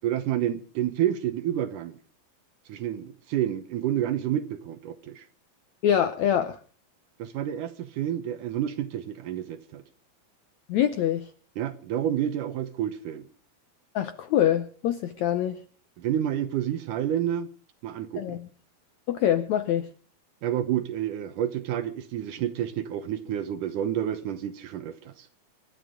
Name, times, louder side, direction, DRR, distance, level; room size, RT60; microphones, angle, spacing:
voice 1, 0.0-2.0 2.7-5.3 7.2-9.8 11.6-13.3 16.0-17.5 17.8-18.4 20.4-25.3, right 11 dB, 70° right, 2.1 m, -29 dB
voice 2, 5.8-6.6 10.7-11.3 13.9-15.6 18.2-18.5 19.1-19.9, left 10 dB, 75° left, 1.7 m, -24 dB
26.0 x 12.5 x 3.7 m
omnidirectional pair, 4.3 m